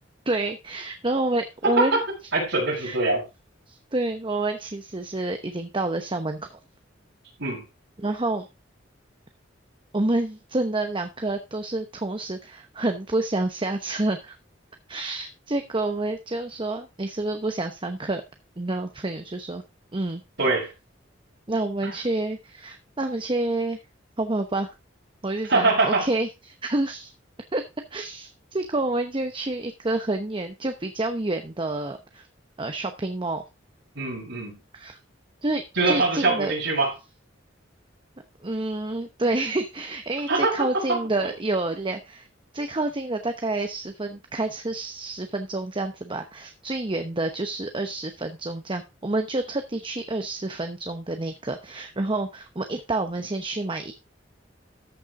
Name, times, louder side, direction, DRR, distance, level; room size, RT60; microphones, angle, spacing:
voice 1, 0.3-2.0 2.8-3.0 3.7-6.6 8.0-8.5 9.9-14.4 14.9-18.2 18.6-19.6 19.9-20.2 21.5-23.8 24.2-24.8 25.2-27.1 27.5-27.6 27.9-32.3 32.6-33.4 34.7-35.0 35.4-36.5 38.4-42.3 42.5-53.9, right 2 dB, 25° right, 0.9 m, -28 dB
voice 2, 1.6-2.0 2.3-3.2 7.4-7.6 20.4-20.7 25.5-26.1 34.0-34.6 35.8-36.9 40.3-40.5 40.9-41.3, right 3 dB, 70° right, 5.4 m, -23 dB
13.5 x 7.0 x 3.7 m
head